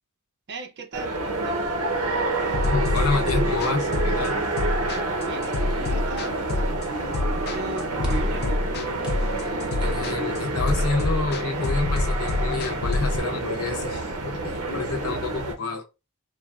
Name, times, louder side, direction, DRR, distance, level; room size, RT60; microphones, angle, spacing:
voice 1, 0.5-1.8 5.3-6.8 7.2-8.6, right 3 dB, 50° right, 0.5 m, -38 dB
sound 1, 0.9-15.5, right 2 dB, 85° right, 0.7 m, -28 dB
sound 2, 2.5-13.2, left 2 dB, 45° left, 0.4 m, -27 dB
voice 2, 2.7-4.4 9.8-15.8, left 4 dB, 80° left, 0.7 m, -29 dB
sound 3, 8.0-12.5, right 1 dB, 5° right, 0.7 m, -44 dB
3.3 x 2.3 x 2.3 m
head